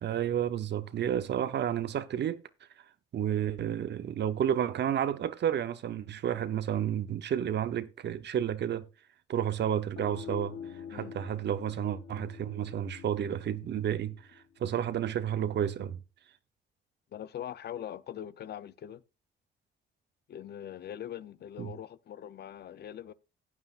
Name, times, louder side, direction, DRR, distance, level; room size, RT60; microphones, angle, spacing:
voice 1, 0.0-2.4 3.1-8.8 9.3-10.5 10.9-16.0 21.6-21.7, right 9 dB, 60° right, 0.9 m, -31 dB
sound 1, 9.9-15.3, left 7 dB, 80° left, 1.2 m, -47 dB
voice 2, 17.1-19.0 20.3-23.1, left 10 dB, 55° left, 0.7 m, -42 dB
15.0 x 9.5 x 2.5 m
cardioid pair, 90°, 20 cm